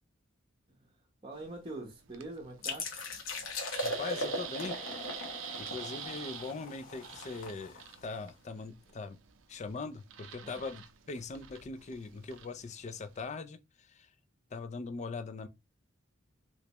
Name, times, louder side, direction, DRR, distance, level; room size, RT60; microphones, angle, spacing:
voice 1, 1.2-2.9 10.4-10.6, right 2 dB, 25° right, 0.7 m, -44 dB
sound 1, 1.3-13.3, right 10 dB, 70° right, 0.5 m, -48 dB
sound 2, 2.6-8.2, left 1 dB, 85° left, 1.0 m, -39 dB
voice 2, 3.8-4.8 5.3-9.2 9.5-14.1 14.5-15.5, left 4 dB, 35° left, 0.4 m, -41 dB
3.2 x 2.9 x 2.9 m
head